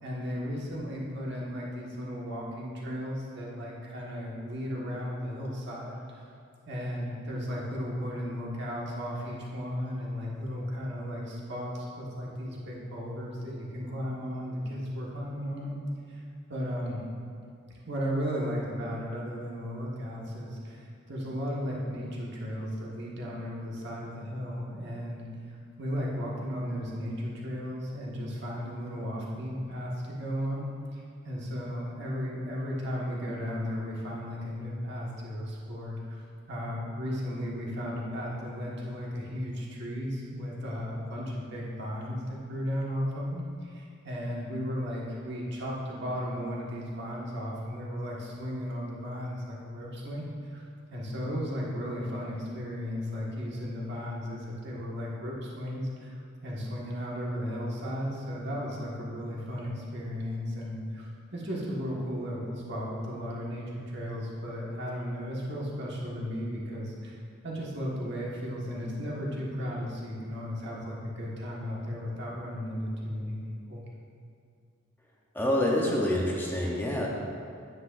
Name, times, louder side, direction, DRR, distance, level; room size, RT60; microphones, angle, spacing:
voice 1, 0.0-6.3 6.7-15.8 16.1-16.2 16.5-17.0 17.9-30.7 30.9-36.2 36.5-50.3 50.5-50.6 50.9-67.2 67.4-73.4 73.7-73.8, equal, 60° right, -4 dB, 1.5 m, -35 dB
voice 2, 75.3-77.1, left 1 dB, 10° left, -2 dB, 0.7 m, -27 dB
9.6 x 7.8 x 2.5 m, 2.3 s
head